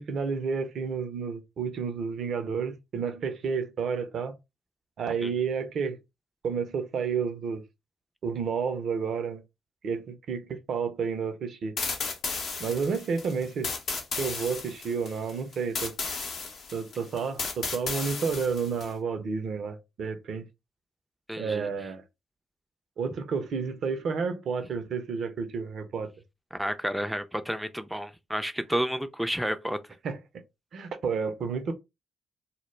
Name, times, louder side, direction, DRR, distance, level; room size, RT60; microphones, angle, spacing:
voice 1, 0.0-4.3 5.0-6.0 6.4-7.6 8.2-9.4 9.8-11.7 12.6-13.7 14.2-15.9 16.7-20.4 21.4-22.0 23.0-26.1 30.0-30.2 30.7-31.7, right 5 dB, 65° right, 0.5 m, -30 dB
sound 1, 11.8-18.9, left 4 dB, 65° left, 0.6 m, -34 dB
voice 2, 21.3-21.7 26.5-29.8, equal, 5° right, 0.3 m, -31 dB
2.0 x 2.0 x 3.1 m
hypercardioid pair, 40°, 0 cm